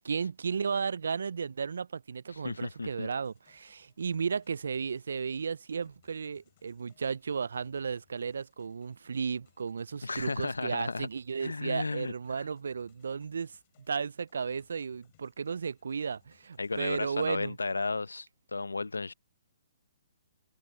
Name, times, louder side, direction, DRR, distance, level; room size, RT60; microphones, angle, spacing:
voice 1, 0.0-13.6 13.9-17.6, right 6 dB, 70° right, 0.4 m, -34 dB
voice 2, 2.3-3.1 10.0-11.1 11.4-12.4 16.6-19.1, left 3 dB, 85° left, 0.7 m, -34 dB
sound 1, 3.2-17.0, left 18 dB, 40° left, 4.5 m, -70 dB
hypercardioid pair, 130°, 0 cm